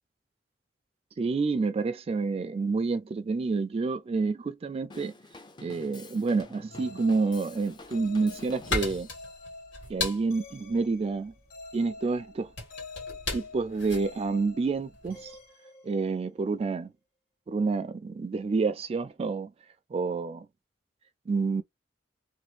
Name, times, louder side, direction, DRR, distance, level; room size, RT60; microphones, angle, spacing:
voice 1, 1.2-5.1 5.6-9.1 9.9-11.3 11.7-12.5 13.3-15.3 15.8-16.9 17.5-19.5 19.9-20.5 21.3-21.6, right 4 dB, 35° right, 0.3 m, -28 dB
Drum kit / Drum, 4.9-9.3, left 3 dB, 25° left, 0.5 m, -49 dB
sound 1, 6.7-16.5, left 3 dB, 50° left, 1.0 m, -47 dB
sound 2, 7.8-15.2, left 3 dB, 85° left, 1.8 m, -37 dB
3.0 x 2.3 x 3.1 m
head